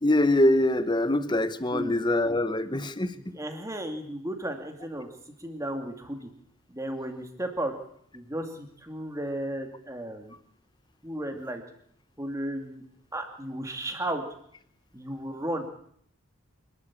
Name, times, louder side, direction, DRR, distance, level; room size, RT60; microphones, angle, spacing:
voice 1, 0.0-3.2, left 1 dB, 20° left, 12 dB, 0.9 m, -24 dB
voice 2, 3.1-5.1 5.4-6.3 6.7-7.7 8.1-10.3 11.0-11.6 12.2-12.8 13.1-14.2 14.9-15.6, right 1 dB, 15° right, 5 dB, 2.4 m, -34 dB
26.0 x 12.0 x 8.6 m, 0.67 s
head